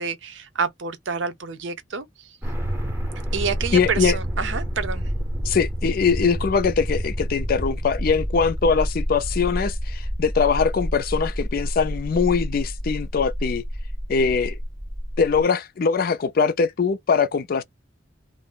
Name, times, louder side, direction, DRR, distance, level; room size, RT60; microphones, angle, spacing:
voice 1, 0.0-2.4 3.3-5.1, right 5 dB, 80° right, 0.6 m, -28 dB
sound 1, 2.4-15.4, equal, 10° right, 0.6 m, -28 dB
voice 2, 3.7-4.1 5.5-13.6 14.1-14.6 15.2-17.6, left 5 dB, 50° left, 0.4 m, -22 dB
2.4 x 2.0 x 3.6 m
head